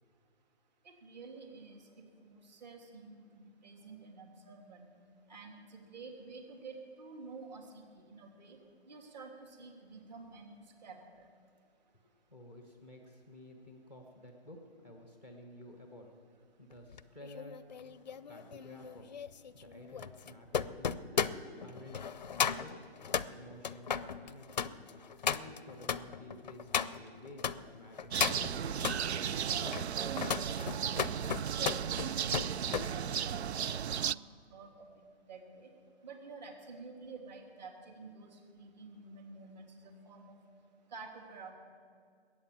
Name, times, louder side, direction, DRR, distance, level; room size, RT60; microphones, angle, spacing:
voice 1, 1.0-1.9 2.2-4.9 5.3-8.6 8.9-10.6 10.8-11.3 31.6-34.2 34.5-35.7 36.0-40.4 40.9-41.5, right 4 dB, 40° right, 2 dB, 2.9 m, -50 dB
voice 2, 12.3-16.1 16.6-17.6 18.3-19.1 19.5-21.3 21.6-22.8 23.1-24.8 25.2-29.5, left 1 dB, 5° right, 2 dB, 0.6 m, -52 dB
sound 1, 16.9-27.6 28.0-29.0 29.5-32.9 33.2-33.5, left 7 dB, 45° left, 0.5 m, -36 dB
sound 2, 28.1-34.1, right 8 dB, 80° right, 0.5 m, -35 dB
21.0 x 9.0 x 7.3 m, 2.1 s
hypercardioid pair, 160°, 32 cm